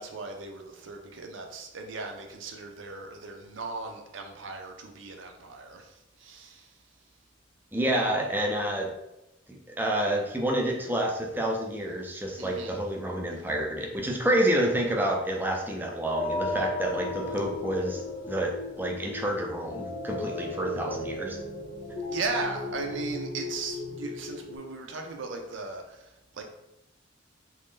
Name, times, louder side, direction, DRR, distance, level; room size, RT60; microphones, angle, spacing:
voice 1, 0.0-6.7 12.4-12.8 22.1-26.4, right 3 dB, 75° right, 3 dB, 0.5 m, -37 dB
voice 2, 7.7-8.9 9.5-21.4, right 1 dB, 10° right, 0 dB, 0.4 m, -29 dB
sound 1, 16.1-24.6, left 2 dB, 40° left, 0.6 m, -35 dB
3.0 x 2.6 x 3.6 m, 0.91 s
head